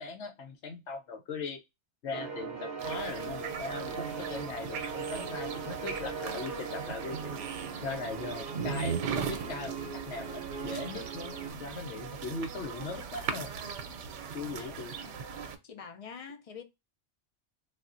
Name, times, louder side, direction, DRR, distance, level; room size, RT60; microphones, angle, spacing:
voice 1, 0.0-1.6 2.0-7.3 7.8-9.8 10.1-13.5 14.3-14.9, left 4 dB, 75° left, 1.0 m, -39 dB
sound 1, 2.1-11.5, right 5 dB, 55° right, 0.8 m, -40 dB
sound 2, 2.8-15.6, right 6 dB, 90° right, 0.9 m, -39 dB
voice 2, 15.6-16.6, left 6 dB, 40° left, 0.5 m, -45 dB
3.5 x 2.4 x 2.4 m
omnidirectional pair, 1.2 m